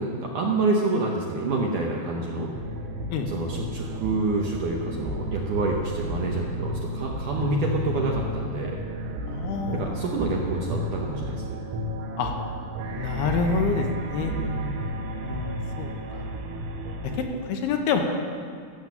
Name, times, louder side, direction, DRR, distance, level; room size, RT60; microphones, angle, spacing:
voice 1, 0.0-2.5 3.3-8.8 9.7-11.6 14.3-14.8, right 2 dB, 75° right, -1 dB, 2.0 m, -27 dB
sound 1, 2.5-17.3, right 1 dB, 90° right, 3.2 m, -32 dB
voice 2, 9.3-10.4 12.2-12.3 13.0-14.3 15.2-16.3 17.4-18.0, left 5 dB, 80° left, 3 dB, 2.8 m, -28 dB
14.5 x 7.4 x 7.3 m, 2.2 s
omnidirectional pair, 4.8 m